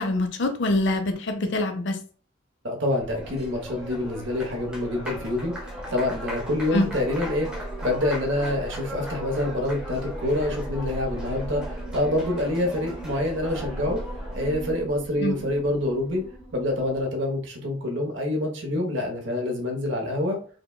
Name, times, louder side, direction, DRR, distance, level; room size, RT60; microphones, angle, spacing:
voice 1, 0.0-2.0 6.7-6.9 15.2-15.4, left 2 dB, 55° left, 6 dB, 0.5 m, -24 dB
voice 2, 2.6-14.0 14.3-16.2 16.5-20.4, left 1 dB, 60° right, 3 dB, 0.9 m, -27 dB
Applause, 2.8-14.6, equal, 5° right, 0.5 m, -39 dB
sound 1, 3.0-17.0, right 1 dB, 30° right, 1.0 m, -38 dB
4.9 x 2.2 x 2.2 m, 0.42 s
head